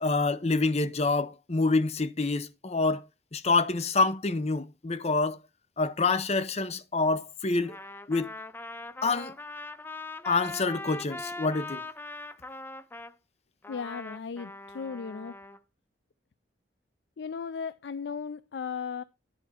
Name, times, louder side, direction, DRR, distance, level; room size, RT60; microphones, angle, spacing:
voice 1, 0.0-3.0 3.3-5.4 5.8-7.8 8.1-8.3 9.0-9.3 10.2-11.8, left 3 dB, 40° left, 0.8 m, -27 dB
Trumpet, 7.6-13.1 13.6-15.6, left 2 dB, 10° left, 0.5 m, -41 dB
voice 2, 13.7-15.4 17.2-19.0, left 6 dB, 75° left, 0.4 m, -36 dB
11.0 x 4.5 x 5.7 m
head